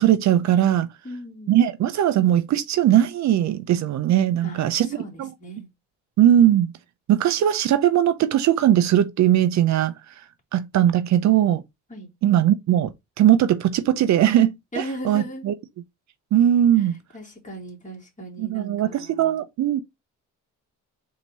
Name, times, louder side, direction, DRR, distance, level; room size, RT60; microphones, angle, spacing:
voice 1, 0.0-0.9 1.5-4.9 5.2-5.3 6.2-6.7 7.1-9.9 10.5-11.6 12.2-12.9 13.2-15.5 16.3-17.0 18.4-19.8, right 11 dB, 65° right, 0.6 m, -19 dB
voice 2, 1.0-1.5 4.4-5.7 11.9-12.1 14.7-15.4 16.8-16.9 17.1-19.4, right 1 dB, 25° left, 2.5 m, -37 dB
4.0 x 2.9 x 4.6 m
cardioid pair, 90°, 30 cm